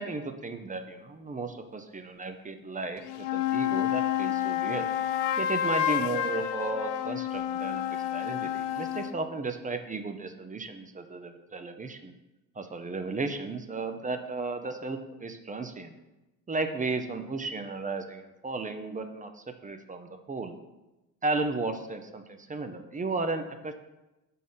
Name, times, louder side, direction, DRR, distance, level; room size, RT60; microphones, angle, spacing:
voice 1, 0.0-3.0 3.3-4.9 5.4-12.2 12.6-15.9 16.5-20.5 21.2-23.7, right 3 dB, 20° right, 7 dB, 0.7 m, -34 dB
sound 1, 3.0-9.2, left 11 dB, 80° left, 0.5 m, -29 dB
6.0 x 3.7 x 5.5 m, 1.0 s
supercardioid pair, 75°, 36 cm